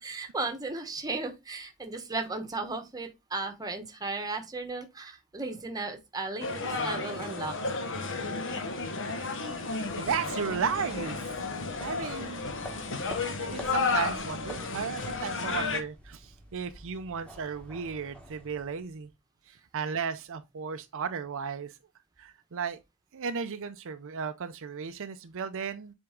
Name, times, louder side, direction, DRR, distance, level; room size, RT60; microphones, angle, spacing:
voice 1, 0.0-7.8, right 3 dB, 15° right, 1.1 m, -35 dB
sound 1, 6.4-15.8, left 4 dB, 60° left, 1.1 m, -33 dB
voice 2, 8.7-11.3 11.8-12.5 13.4-19.1 19.5-21.7 22.2-22.8 23.1-25.9, right 6 dB, 65° right, 0.5 m, -35 dB
sound 2, 9.5-19.1, equal, 5° left, 1.4 m, -48 dB
7.8 x 3.6 x 3.6 m
head